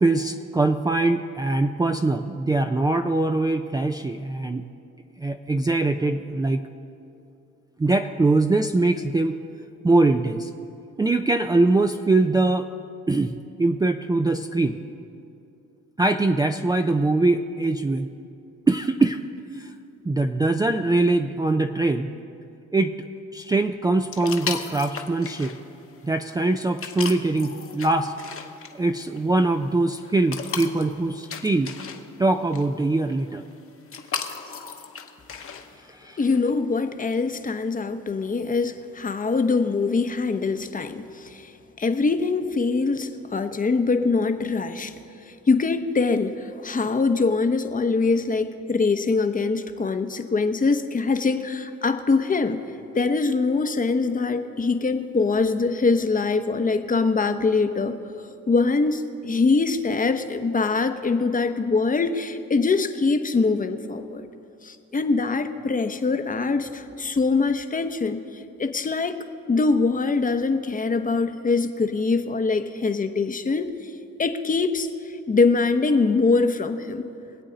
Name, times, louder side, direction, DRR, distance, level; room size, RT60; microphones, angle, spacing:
voice 1, 0.0-4.7 5.2-6.6 7.8-9.4 9.8-10.5 11.0-12.7 13.1-14.8 16.0-18.1 18.7-19.2 19.5-19.7 20.0-22.1 22.7-23.0 23.3-25.6 26.0-28.1 28.7-31.7 32.2-33.4 35.9-36.2, right 2 dB, 15° right, 6 dB, 0.4 m, -22 dB
sound 1, 24.1-35.8, left 6 dB, 45° left, 1.1 m, -37 dB
voice 2, 36.2-41.5 41.8-44.9 45.3-52.6 52.9-58.0 58.5-64.2 64.6-73.9 74.2-77.1, left 4 dB, 25° left, 8 dB, 0.8 m, -23 dB
23.5 x 8.2 x 3.9 m, 2.6 s
cardioid pair, 90°, 30 cm